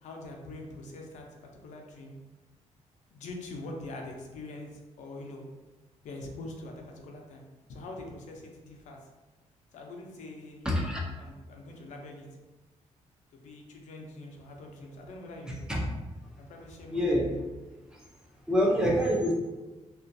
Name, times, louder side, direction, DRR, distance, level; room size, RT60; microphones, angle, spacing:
voice 1, 0.0-2.1 3.1-5.5 6.0-7.4 7.7-9.1 9.7-10.8 11.2-12.3 13.3-15.6 16.4-17.4, left 2 dB, 75° left, 1 dB, 0.5 m, -44 dB
voice 2, 10.6-11.0 15.7-15.9 16.9-17.3 17.9-18.0 18.5-19.3, equal, 5° right, -2 dB, 0.3 m, -26 dB
2.4 x 2.2 x 2.5 m, 1.2 s
wide cardioid pair, 170°, 12 cm